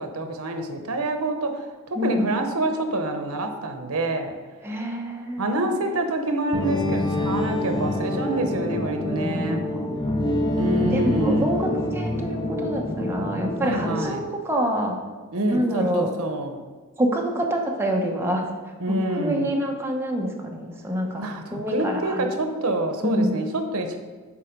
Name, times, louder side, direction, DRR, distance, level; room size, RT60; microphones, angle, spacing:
voice 1, 0.0-1.7 2.0-4.3 5.4-9.7 10.5-11.6 13.6-14.2 15.3-16.6 18.8-19.5 21.2-24.0, right 1 dB, 80° right, 5 dB, 0.9 m, -27 dB
voice 2, 1.9-2.3 4.6-5.7 9.2-9.8 10.9-15.0 15.5-16.1 17.0-18.4 19.1-21.3 21.5-22.3 23.0-23.3, equal, 10° right, 0 dB, 0.8 m, -26 dB
sound 1, 6.5-14.1, left 1 dB, 20° left, 0.6 m, -26 dB
7.4 x 4.2 x 5.2 m, 1.4 s
head